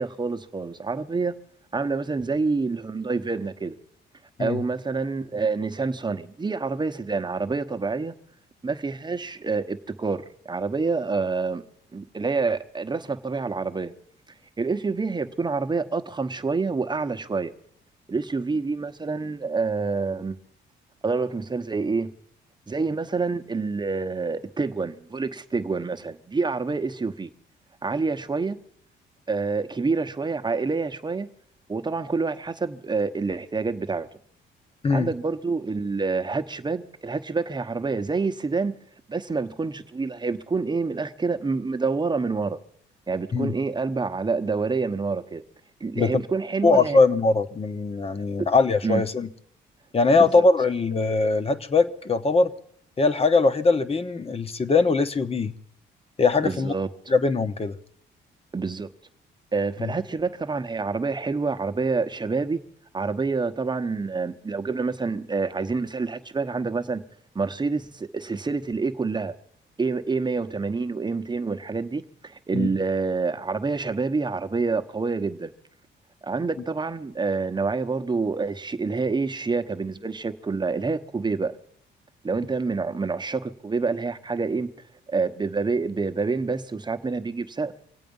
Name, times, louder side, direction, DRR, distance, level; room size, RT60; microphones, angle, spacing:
voice 1, 0.0-1.3 1.7-3.8 4.4-8.1 8.6-11.6 11.9-13.9 14.6-17.5 18.1-20.4 21.0-22.1 22.7-27.3 27.8-28.6 29.3-31.3 31.7-34.1 34.9-38.7 39.1-42.6 43.1-45.4 45.8-47.0 48.4-48.5 48.8-49.0 50.1-50.4 56.4-56.9 58.5-58.9 59.5-62.6 62.9-67.0 67.3-69.3 69.8-75.5 76.2-81.6 82.2-84.7 85.1-87.7, right 4 dB, 20° right, 1.0 m, -27 dB
voice 2, 46.6-49.3 49.9-52.5 53.0-55.5 56.2-56.7 57.1-57.8 59.8-59.9 72.5-72.7, left 3 dB, 30° left, 1.0 m, -21 dB
25.0 x 8.4 x 5.4 m
cardioid pair, 90°, 20 cm